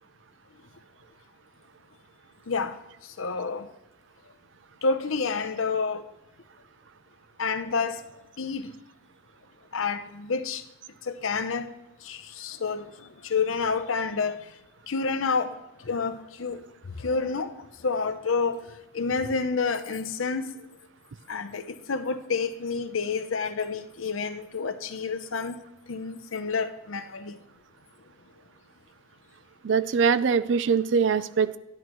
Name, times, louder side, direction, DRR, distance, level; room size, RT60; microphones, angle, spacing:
voice 1, 2.5-2.8 3.2-3.7 4.8-6.0 7.4-8.1 8.4-8.7 9.7-10.6 11.0-11.7 12.0-14.5 14.9-16.6 17.0-18.7 18.9-20.5 21.3-25.6 25.9-27.4, left 4 dB, 85° left, 9 dB, 0.7 m, -29 dB
voice 2, 29.6-31.6, right 6 dB, 60° right, 16 dB, 0.4 m, -23 dB
12.5 x 10.5 x 3.1 m, 0.93 s
head